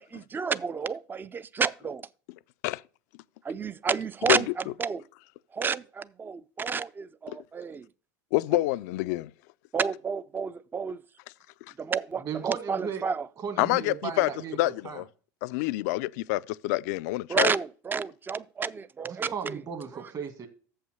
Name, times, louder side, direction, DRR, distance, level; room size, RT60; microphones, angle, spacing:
voice 1, 0.0-2.0 3.4-5.0 5.5-7.9 9.7-11.0 11.8-13.3 17.3-19.6, right 5 dB, 20° right, 0.5 m, -30 dB
voice 2, 8.3-9.3 13.6-14.3 14.6-15.0 15.4-17.5, left 19 dB, 65° left, 0.4 m, -27 dB
voice 3, 12.2-13.1 13.4-14.6 14.8-15.0 19.1-20.5, right 7 dB, 40° right, 1.9 m, -36 dB
7.2 x 5.6 x 6.3 m
hypercardioid pair, 90°, 10 cm